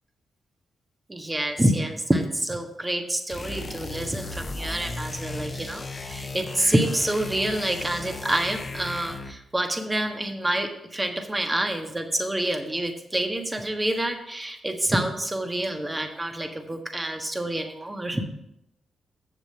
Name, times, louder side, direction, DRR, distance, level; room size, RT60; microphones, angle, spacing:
voice 1, 1.1-18.2, right 1 dB, 20° right, 5 dB, 1.5 m, -27 dB
sound 1, 3.3-9.4, left 2 dB, 40° left, 0.9 m, -36 dB
7.6 x 6.8 x 5.8 m, 0.82 s
hypercardioid pair, 45°, 0 cm